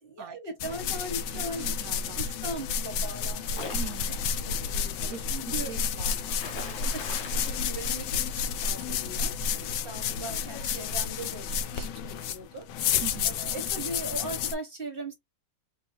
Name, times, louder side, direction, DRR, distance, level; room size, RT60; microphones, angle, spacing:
voice 1, 0.0-1.7 2.2-3.9 4.4-5.7 6.9-13.0 13.4-15.1, right 2 dB, 40° right, 0.9 m, -39 dB
sound 1, 0.6-14.5, left 6 dB, 75° left, 1.1 m, -31 dB
voice 2, 1.3-2.3 3.7-4.3 5.1-5.2 5.4-6.9 13.0-13.4, right 8 dB, 75° right, 0.8 m, -43 dB
Splash splatter, 3.5-4.5 6.1-8.6, left 4 dB, 90° left, 1.7 m, -41 dB
3.8 x 2.7 x 2.8 m
omnidirectional pair, 2.0 m